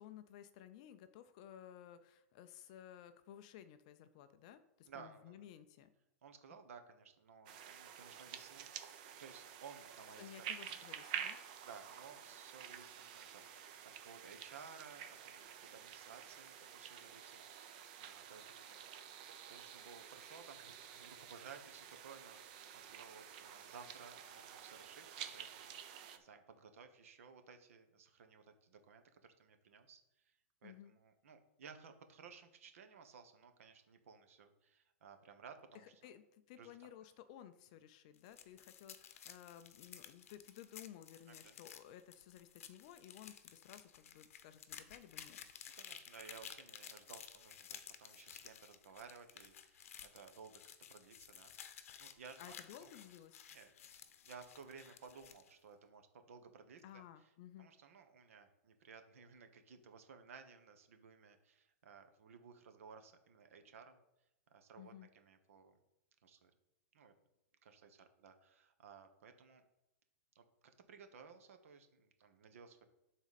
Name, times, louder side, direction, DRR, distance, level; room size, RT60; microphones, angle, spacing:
voice 1, 0.0-5.9 10.2-11.4 30.6-30.9 35.8-45.4 52.4-53.4 56.8-57.7 64.8-65.1, left 11 dB, 25° left, 11 dB, 0.3 m, -56 dB
voice 2, 4.9-5.4 6.2-10.8 11.6-17.5 18.0-18.8 19.5-25.8 26.2-30.3 30.6-36.0 36.6-36.9 41.3-41.6 45.7-51.5 52.0-52.9 53.5-53.7 54.2-57.3 57.6-64.0 64.5-65.8 66.2-66.5 66.9-67.1 67.6-69.6 70.3-72.8, right 6 dB, 60° right, 7 dB, 1.1 m, -57 dB
sound 1, 7.5-26.2, right 9 dB, 30° right, 0.6 m, -50 dB
sound 2, 38.1-55.5, left 8 dB, 60° left, 0.8 m, -55 dB
12.0 x 4.1 x 4.1 m, 0.88 s
supercardioid pair, 180°, 8 cm